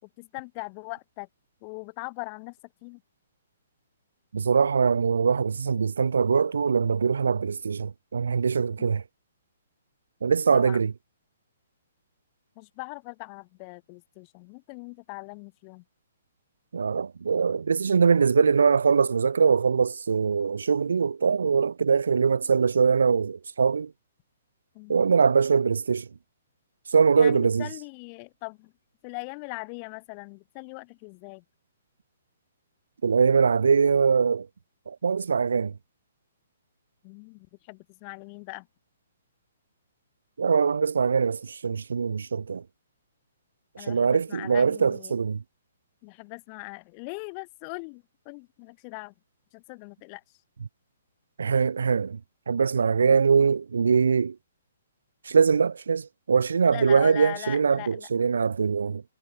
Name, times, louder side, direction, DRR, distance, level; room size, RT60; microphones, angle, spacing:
voice 1, 0.0-1.3 1.6-2.6 2.8-3.0 8.8-8.9 10.5-10.8 12.6-15.8 24.7-25.1 27.2-28.7 29.0-31.4 37.0-38.7 43.8-45.1 46.0-49.1 49.5-50.2 56.6-58.1, left 38 dB, 30° left, 3.6 m, -40 dB
voice 2, 4.3-9.0 10.2-10.9 16.7-23.9 24.9-26.1 26.9-27.7 33.0-34.5 34.9-35.7 40.4-42.6 43.9-45.4 51.4-52.2 52.5-54.4 55.3-59.0, right 5 dB, 65° right, 0.3 m, -22 dB
figure-of-eight pair, 125°, 0 cm